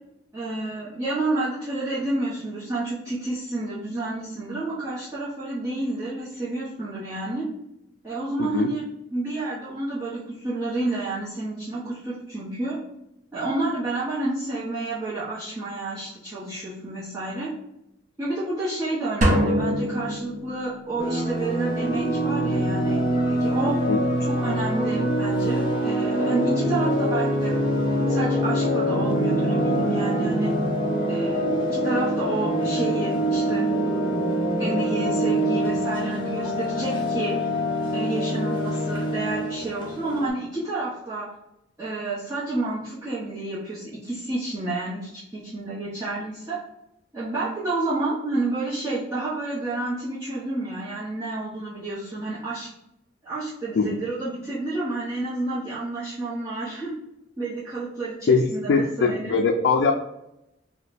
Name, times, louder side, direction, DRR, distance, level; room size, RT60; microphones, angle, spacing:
voice 1, 0.3-7.4 8.0-12.8 13.3-17.5 18.2-23.8 24.2-27.5 28.0-30.5 31.1-31.5 31.8-33.7 34.6-37.4 37.9-41.3 41.8-46.6 47.1-52.7 53.2-56.9 57.4-59.4, right 2 dB, 15° right, -11 dB, 0.9 m, -30 dB
sound 1, 19.2-21.0, equal, 45° right, 0.7 m, -24 dB
sound 2, 21.0-40.3, equal, 25° left, 0.7 m, -24 dB
voice 2, 58.3-59.9, left 4 dB, 70° left, 3 dB, 0.3 m, -21 dB
2.8 x 2.2 x 4.1 m, 0.85 s
head